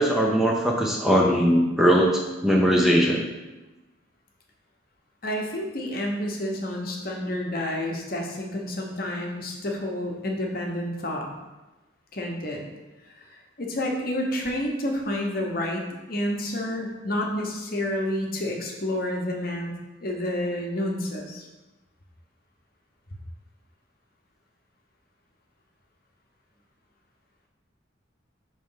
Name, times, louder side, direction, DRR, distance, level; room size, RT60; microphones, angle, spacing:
voice 1, 0.0-2.1 2.4-3.3, equal, ahead, -1 dB, 0.5 m, -20 dB
voice 2, 5.2-11.3 12.1-12.6 13.1-19.7 20.0-21.5, left 1 dB, 50° left, 0 dB, 1.0 m, -29 dB
5.7 x 3.2 x 5.6 m, 1.1 s
head